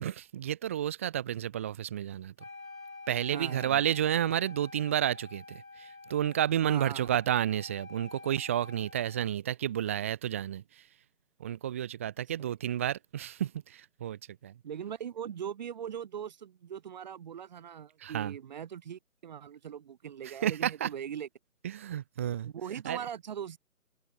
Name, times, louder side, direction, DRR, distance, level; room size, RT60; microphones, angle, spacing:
voice 1, 0.0-2.3 3.1-10.8 11.4-14.5 18.0-18.4 20.2-20.9 21.6-22.5 22.8-23.0, right 11 dB, 10° right, 1.1 m, -31 dB
Wind instrument woodwind instrument, 2.4-9.4, left 3 dB, 65° left, 6.7 m, -48 dB
voice 2, 3.3-3.8 6.6-7.2 12.4-12.5 14.6-21.3 22.5-23.6, right 8 dB, 30° right, 4.7 m, -40 dB
figure-of-eight pair, 150°, 44 cm